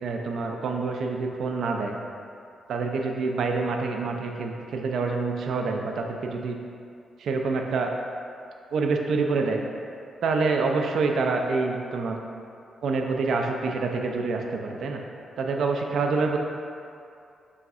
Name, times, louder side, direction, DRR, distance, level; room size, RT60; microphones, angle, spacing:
voice 1, 0.0-2.0 2.7-6.6 7.2-7.9 8.7-9.6 10.2-12.2 12.8-15.0 15.4-16.4, right 4 dB, 75° right, 2 dB, 0.3 m, -26 dB
4.6 x 3.1 x 2.7 m, 2.5 s
cardioid pair, 100°, 0 cm